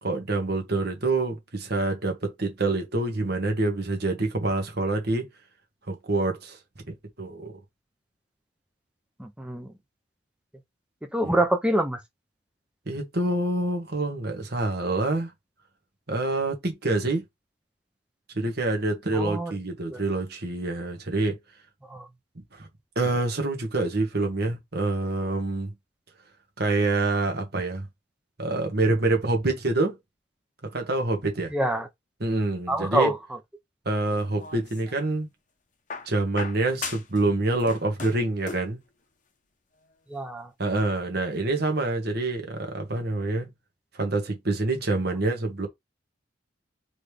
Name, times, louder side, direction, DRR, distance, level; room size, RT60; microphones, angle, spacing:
voice 1, 0.0-5.3 5.9-6.6 6.9-7.6 11.2-11.3 12.9-15.3 16.1-17.2 18.3-21.4 22.5-22.7 22.9-25.7 26.6-27.9 28.4-30.0 30.6-31.5 32.2-33.1 33.8-35.3 36.0-38.8 40.6-43.5 43.9-45.7, right 2 dB, 55° right, 1.4 m, -26 dB
voice 2, 9.2-9.7 11.1-12.0 19.1-19.5 19.9-20.0 21.9-22.1 31.5-31.9 32.7-33.2 40.1-40.5, right 1 dB, 5° right, 0.6 m, -25 dB
sound 1, 34.1-35.1 35.9-37.2 37.5-38.8 39.9-40.0, left 5 dB, 40° left, 0.9 m, -38 dB
3.9 x 3.3 x 3.4 m
head